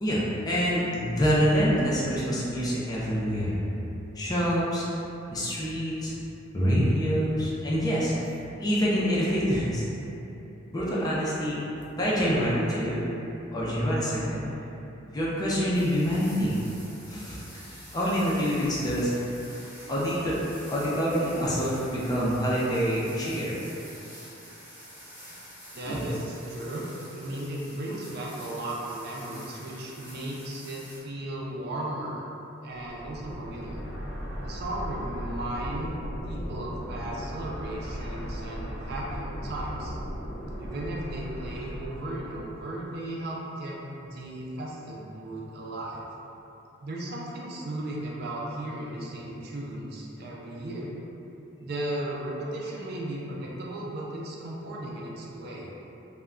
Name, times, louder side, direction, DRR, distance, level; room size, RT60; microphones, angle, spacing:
voice 1, 0.0-3.6 4.2-4.9 5.3-6.1 6.5-8.1 8.6-9.8 10.7-11.6 12.0-13.1 13.5-14.4 15.1-16.6 17.1-17.4 17.9-19.1 19.9-20.3 20.7-23.6 25.9-26.0, equal, 20° left, -7 dB, 0.4 m, -26 dB
sound 1, 15.7-31.0, equal, 10° right, 0.9 m, -47 dB
voice 2, 25.7-32.2 32.6-33.8 34.4-36.0 36.2-40.0 40.6-46.0 46.8-50.9 51.6-55.7, right 1 dB, 55° right, -3 dB, 0.4 m, -36 dB
sound 2, 32.8-42.6, equal, 70° left, 0.9 m, -37 dB
2.2 x 2.1 x 3.6 m, 2.9 s
head